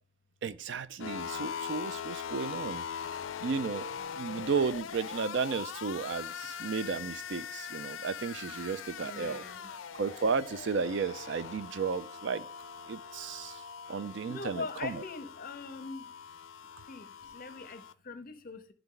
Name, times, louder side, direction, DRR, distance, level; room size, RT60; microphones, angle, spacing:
voice 1, 0.4-2.8 3.4-3.9 4.2-9.4 9.9-12.5 12.9-13.6 13.9-15.0, right 5 dB, 65° right, 0.4 m, -33 dB
sound 1, 1.0-17.9, left 8 dB, 80° left, 0.4 m, -42 dB
Brass instrument, 5.9-14.8, right 1 dB, 45° right, 1.2 m, -54 dB
voice 2, 9.0-9.6 14.3-16.1 16.9-17.1 17.3-18.6, left 4 dB, 45° left, 0.7 m, -41 dB
10.0 x 3.4 x 3.8 m
head